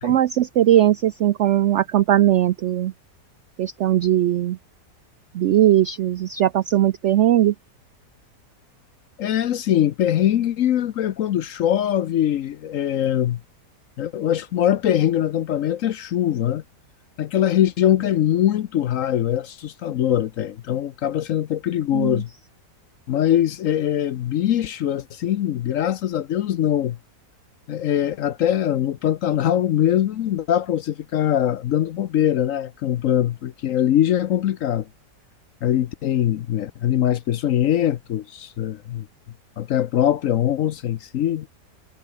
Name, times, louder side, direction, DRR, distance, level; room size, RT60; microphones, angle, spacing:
voice 1, 0.0-2.9 3.6-4.6 5.3-7.5 21.9-22.2, right 12 dB, 80° right, 0.6 m, -19 dB
voice 2, 9.2-13.4 14.0-16.6 17.2-22.3 23.1-27.0 27.7-34.9 35.6-39.1 39.6-41.5, left 11 dB, 65° left, 0.9 m, -22 dB
omnidirectional pair, 1.8 m